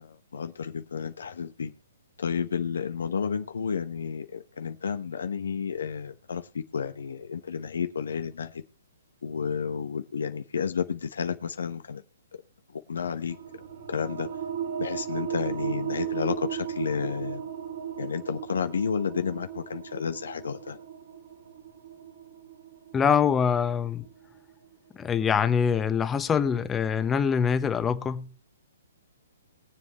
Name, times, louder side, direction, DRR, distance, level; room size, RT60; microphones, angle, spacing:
voice 1, 0.0-1.7 2.2-8.6 9.2-12.0 12.7-13.4 13.9-14.3 14.8-17.4 18.0-20.8, left 6 dB, 75° left, 1.1 m, -31 dB
sound 1, 13.3-24.5, right 9 dB, 55° right, 3.2 m, -36 dB
voice 2, 22.9-24.1 24.9-28.4, left 7 dB, 15° left, 1.2 m, -24 dB
22.5 x 7.5 x 3.1 m
hypercardioid pair, 130°, 0 cm